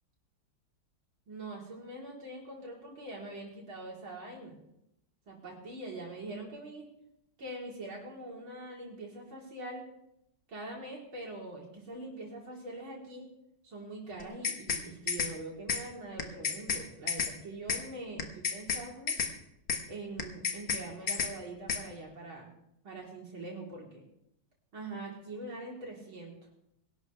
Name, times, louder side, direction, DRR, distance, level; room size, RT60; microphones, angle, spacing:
voice 1, 1.3-4.6 5.3-6.9 7.4-9.8 10.5-13.3 13.6-19.2 19.9-22.5 22.8-24.0 24.7-26.3, right 2 dB, 80° right, -2 dB, 4.7 m, -43 dB
sound 1, 14.2-14.8 15.1-15.3 15.7-15.8 16.2-16.8 17.1-17.3 17.7-17.8 18.2-18.8 19.1-19.3 19.7-19.8 20.2-20.8 21.1-21.3 21.7-21.8, left 6 dB, 65° left, 2.1 m, -31 dB
22.5 x 12.0 x 3.5 m, 0.81 s
omnidirectional pair, 2.2 m